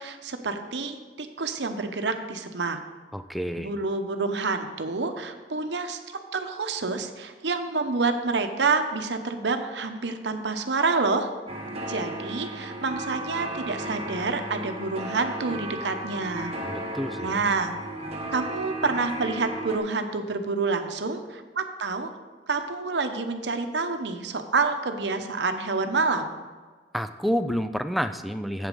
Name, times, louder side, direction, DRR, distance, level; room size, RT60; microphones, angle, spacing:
voice 1, 0.0-2.8 3.6-6.0 6.3-11.3 11.9-16.5 17.2-17.7 18.3-22.1 22.5-26.3, right 4 dB, 85° right, 7 dB, 0.8 m, -28 dB
voice 2, 3.1-3.7 16.6-17.4 26.9-28.7, equal, ahead, 9 dB, 0.4 m, -29 dB
sound 1, 11.5-19.8, right 1 dB, 35° right, 1.0 m, -35 dB
8.1 x 7.5 x 5.4 m, 1.4 s
head